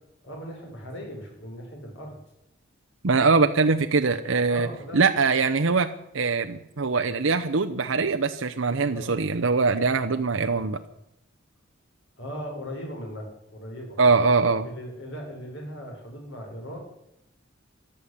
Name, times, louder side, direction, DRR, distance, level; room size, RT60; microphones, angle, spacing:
voice 1, 0.2-2.2 4.5-5.0 8.8-9.1 12.2-14.0 14.6-16.8, equal, 70° left, 1 dB, 5.8 m, -38 dB
voice 2, 3.0-4.7 4.9-5.9 6.1-10.8 14.0-14.7, right 4 dB, 80° right, 6 dB, 0.8 m, -22 dB
14.5 x 11.5 x 8.3 m, 0.83 s
head